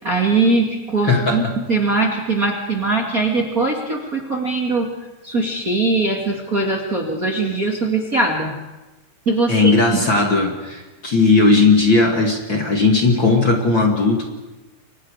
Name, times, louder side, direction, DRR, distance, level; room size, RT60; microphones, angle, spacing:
voice 1, 0.0-4.9 5.2-8.5 9.3-9.8 10.1-10.2, right 3 dB, 30° right, 0 dB, 2.3 m, -21 dB
voice 2, 1.0-1.6 9.5-14.2, left 3 dB, 35° left, 2 dB, 2.6 m, -17 dB
30.0 x 24.5 x 5.0 m, 1.1 s
omnidirectional pair, 4.1 m